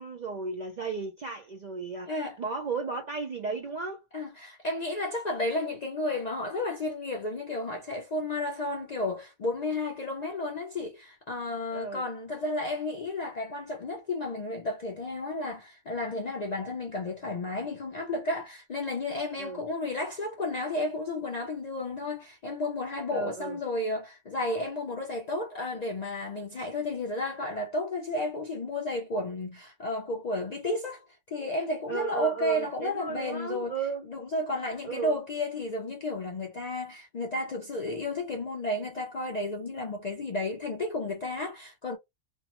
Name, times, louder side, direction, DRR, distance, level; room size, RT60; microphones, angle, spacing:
voice 1, 0.0-4.0 11.7-12.0 19.4-19.6 23.1-23.6 31.9-34.0 34.8-35.2, right 4 dB, 60° right, 0.4 m, -35 dB
voice 2, 4.1-33.7 34.1-42.0, left 2 dB, 55° left, 0.4 m, -32 dB
2.6 x 2.1 x 2.9 m
omnidirectional pair, 1.3 m